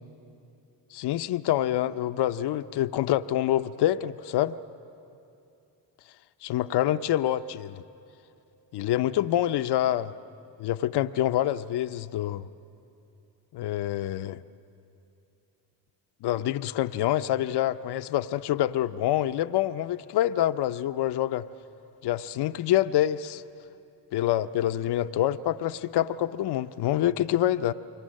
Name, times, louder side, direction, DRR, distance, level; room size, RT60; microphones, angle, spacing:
voice 1, 0.9-4.6 6.4-7.8 8.7-10.1 10.6-12.5 13.5-14.4 16.2-21.4 22.0-23.4 24.1-27.7, left 12 dB, 65° left, 12 dB, 0.7 m, -26 dB
28.5 x 23.0 x 6.4 m, 2.7 s
supercardioid pair, 60°, 43 cm